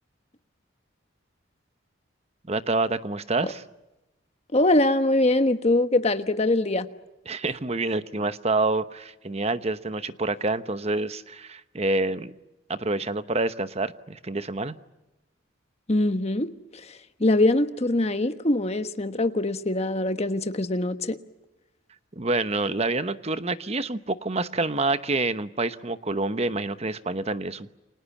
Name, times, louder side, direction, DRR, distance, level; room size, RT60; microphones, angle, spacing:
voice 1, 2.5-3.6 7.3-12.3 12.7-14.8 22.2-27.7, right 2 dB, 30° right, 1.0 m, -27 dB
voice 2, 4.5-6.9 15.9-16.5 16.8-21.2, left 2 dB, 30° left, 1.3 m, -23 dB
29.0 x 26.0 x 7.3 m
head